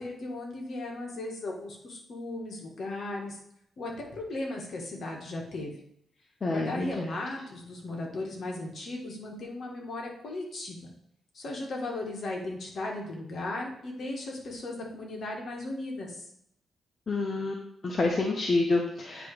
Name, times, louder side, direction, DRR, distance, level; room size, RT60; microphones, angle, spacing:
voice 1, 0.0-3.4 3.8-5.7 6.5-10.9 11.3-16.3, left 2 dB, 55° left, 0 dB, 1.7 m, -36 dB
voice 2, 6.4-7.1 17.1-17.6 17.8-19.3, left 3 dB, 40° left, 1 dB, 0.8 m, -28 dB
8.9 x 3.0 x 4.9 m, 0.73 s
cardioid pair, 100°, 0 cm